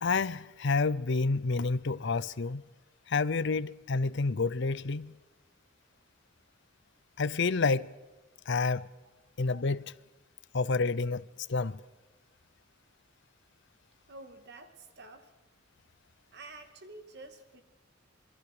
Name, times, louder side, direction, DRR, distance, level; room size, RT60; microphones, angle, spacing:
voice 1, 0.0-2.6 3.1-5.1 7.2-7.9 8.5-8.9 9.4-9.9 10.5-11.2 11.5-11.8, left 4 dB, 60° left, 0.7 m, -29 dB
voice 2, 14.1-15.3 16.3-17.6, right 2 dB, 55° right, 2.6 m, -49 dB
27.5 x 22.0 x 5.0 m
head